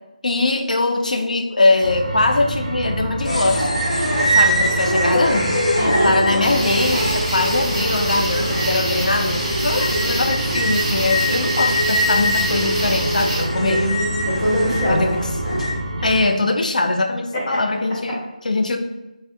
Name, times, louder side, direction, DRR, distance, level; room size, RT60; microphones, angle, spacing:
voice 1, 0.2-3.7 4.3-5.6 6.0-13.9 14.9-15.3 16.0-18.8, left 2 dB, 70° left, 5 dB, 0.4 m, -21 dB
sound 1, 1.8-16.2, right 2 dB, 60° right, 0.4 m, -28 dB
sound 2, 3.2-15.7, equal, 55° left, 1.1 m, -23 dB
voice 2, 5.8-6.2 13.6-15.1 17.3-17.6, equal, 15° left, -5 dB, 0.5 m, -23 dB
sound 3, 6.4-13.4, right 1 dB, 15° right, 0.8 m, -27 dB
3.2 x 2.2 x 2.7 m, 0.97 s
figure-of-eight pair, 170°, 4 cm